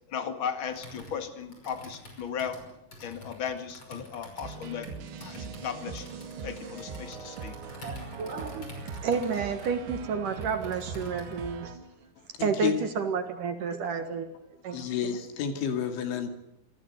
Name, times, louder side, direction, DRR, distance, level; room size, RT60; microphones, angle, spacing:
voice 1, 0.1-2.6 3.0-4.9 5.2-6.1 6.4-7.5, left 7 dB, 45° left, 8 dB, 1.7 m, -36 dB
Computer keyboard, 0.7-11.5, left 1 dB, 25° left, 6.2 m, -48 dB
sound 1, 4.4-11.8, right 5 dB, 75° right, 4.2 m, -41 dB
voice 2, 7.8-11.9 12.4-14.3 14.6-15.1, right 5 dB, 60° right, 7 dB, 2.8 m, -31 dB
voice 3, 12.4-12.7 14.7-16.3, left 8 dB, 85° left, 7 dB, 4.8 m, -30 dB
27.5 x 18.5 x 8.0 m, 0.86 s
omnidirectional pair, 5.2 m